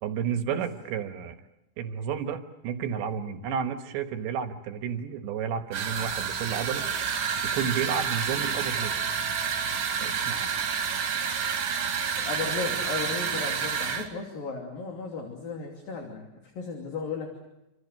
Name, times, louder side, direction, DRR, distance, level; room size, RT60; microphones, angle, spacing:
voice 1, 0.0-1.4 1.8-6.9 7.4-9.0 10.0-10.5, right 7 dB, 75° right, 7 dB, 3.5 m, -31 dB
sound 1, 5.7-14.1, right 7 dB, 55° right, 4.0 m, -29 dB
voice 2, 12.2-16.3 16.6-17.4, left 4 dB, 50° left, 2 dB, 4.2 m, -35 dB
28.0 x 26.0 x 6.6 m, 0.91 s
omnidirectional pair, 5.5 m